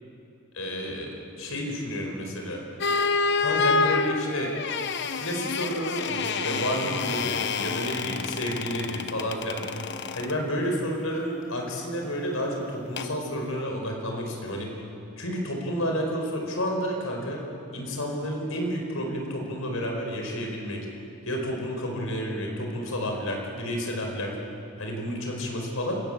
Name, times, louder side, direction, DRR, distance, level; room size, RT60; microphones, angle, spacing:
voice 1, 0.5-1.1 1.4-2.6 3.4-4.5 5.1-9.6 10.1-14.7 15.2-17.4 17.7-20.8 21.3-24.3 24.8-25.9, equal, 75° left, 1 dB, 4.7 m, -30 dB
sound 1, 2.8-10.4 13.0-13.2, left 4 dB, 50° left, 0.9 m, -28 dB
27.5 x 15.0 x 8.8 m, 2.7 s
head